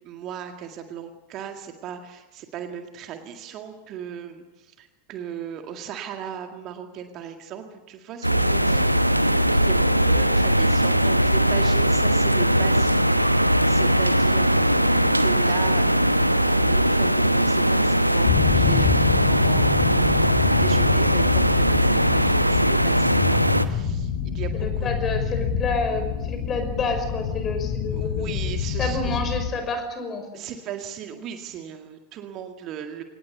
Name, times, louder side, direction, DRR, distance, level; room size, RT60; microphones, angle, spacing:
voice 1, 0.0-23.1 23.4-24.9 27.9-29.2 30.3-33.0, right 8 dB, 35° right, 5 dB, 1.9 m, -37 dB
sound 1, 8.2-23.6, right 1 dB, 90° right, 0.9 m, -20 dB
sound 2, 18.3-29.5, left 7 dB, 45° left, 3.5 m, -26 dB
voice 2, 24.5-28.4 28.8-30.4, left 3 dB, 25° left, 7 dB, 5.7 m, -29 dB
24.5 x 19.5 x 8.1 m, 1.1 s
figure-of-eight pair, 90°, 0 cm